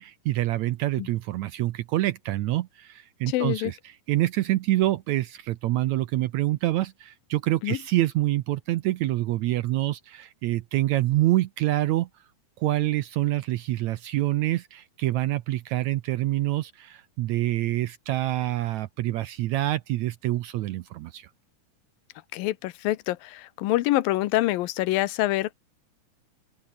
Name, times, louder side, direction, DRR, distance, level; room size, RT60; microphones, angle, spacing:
voice 1, 0.0-12.1 12.6-21.3, right 15 dB, 75° right, 1.7 m, -26 dB
voice 2, 3.3-3.7 7.6-7.8 22.3-25.5, left 16 dB, 90° left, 2.7 m, -26 dB
open air
omnidirectional pair, 4.0 m